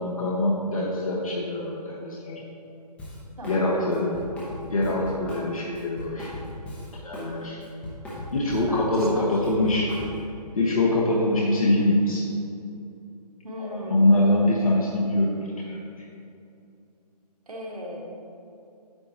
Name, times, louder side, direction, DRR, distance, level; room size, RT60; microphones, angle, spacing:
voice 1, 0.0-2.4 3.5-4.1 4.7-6.3 7.0-7.6 8.3-9.9 10.5-12.2 13.6-15.4 15.6-15.8, left 1 dB, 55° left, -4 dB, 1.3 m, -23 dB
Drum kit, 3.0-3.6 3.9-7.3 7.6-10.3, left 1 dB, 5° left, 0.8 m, -38 dB
voice 2, 3.4-3.8 8.7-9.4 13.4-14.3 17.5-18.0, equal, 60° right, -1 dB, 1.8 m, -36 dB
9.5 x 7.7 x 2.9 m, 2.6 s
figure-of-eight pair, 140°, 21 cm